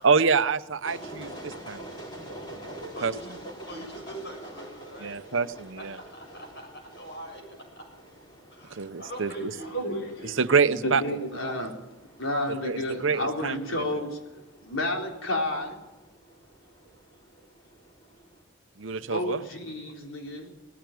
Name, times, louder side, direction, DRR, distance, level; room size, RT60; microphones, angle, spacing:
voice 1, 0.0-1.8 3.0-3.1 5.0-6.0 8.7-9.3 10.3-11.0 12.6-13.6 18.8-19.4, right 5 dB, 70° right, 12 dB, 0.8 m, -26 dB
sound 1, 0.8-18.4, right 1 dB, 20° left, 4.7 m, -46 dB
voice 2, 1.0-5.4 5.8-7.9 8.5-9.8, right 1 dB, 55° left, 1 dB, 7.4 m, -44 dB
voice 3, 9.4-10.4 10.8-11.8 12.2-14.2 14.6-15.8 19.1-20.5, left 1 dB, 85° left, 1 dB, 3.9 m, -31 dB
19.0 x 15.5 x 9.3 m, 1.1 s
head